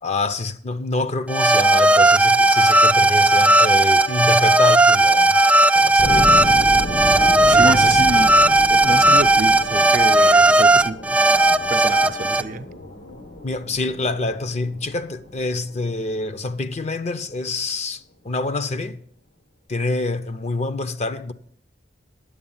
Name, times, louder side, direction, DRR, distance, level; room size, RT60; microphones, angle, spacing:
voice 1, 0.0-5.4 5.7-6.4 7.5-8.0 13.4-19.0 19.7-21.3, left 2 dB, 40° left, 0.6 m, -26 dB
sound 1, 1.3-12.4, right 2 dB, 10° right, 0.4 m, -15 dB
sound 2, 6.0-16.8, left 1 dB, 75° left, 1.4 m, -32 dB
voice 2, 7.5-8.4 8.7-11.0 11.7-12.7, right 3 dB, 50° right, 0.6 m, -28 dB
10.0 x 8.2 x 7.3 m
head